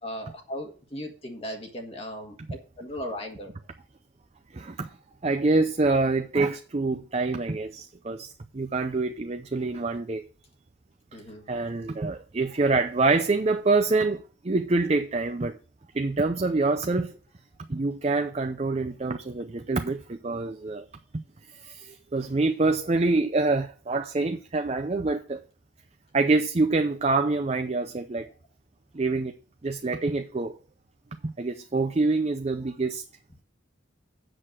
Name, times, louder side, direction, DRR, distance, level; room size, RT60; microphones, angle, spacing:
voice 1, 0.0-3.5 11.1-11.5, equal, 30° left, 1.4 m, -37 dB
voice 2, 4.5-4.9 5.2-10.2 11.5-15.6 15.9-17.1 17.7-20.9 21.1-21.2 21.6-25.4 26.1-28.3 28.9-29.3 29.6-30.6 31.2-33.0, right 3 dB, 35° right, 0.5 m, -26 dB
7.8 x 6.5 x 6.1 m
head